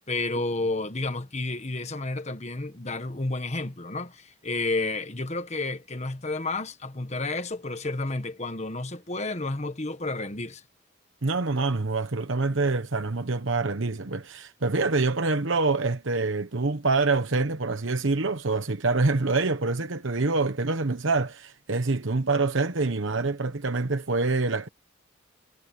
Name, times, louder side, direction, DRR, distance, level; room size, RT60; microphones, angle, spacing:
voice 1, 0.1-10.6, left 2 dB, 35° left, 1.4 m, -31 dB
voice 2, 11.2-24.7, right 3 dB, 70° right, 1.1 m, -26 dB
head